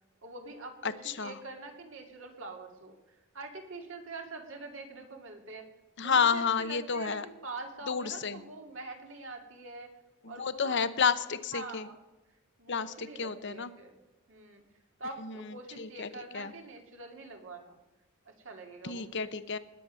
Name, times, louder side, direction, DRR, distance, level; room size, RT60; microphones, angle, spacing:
voice 1, 0.2-5.7 6.0-9.9 10.3-10.9 11.5-12.0 12.6-14.0 14.3-14.6 15.0-17.8 18.3-19.3, right 3 dB, 60° right, 3 dB, 2.3 m, -45 dB
voice 2, 0.8-1.3 6.0-7.2 7.9-8.4 10.2-11.9 12.7-13.7 15.2-15.3 15.8-16.1 16.3-16.5 18.8-19.6, left 6 dB, 55° left, 13 dB, 0.8 m, -30 dB
20.0 x 7.1 x 6.3 m, 1.1 s
head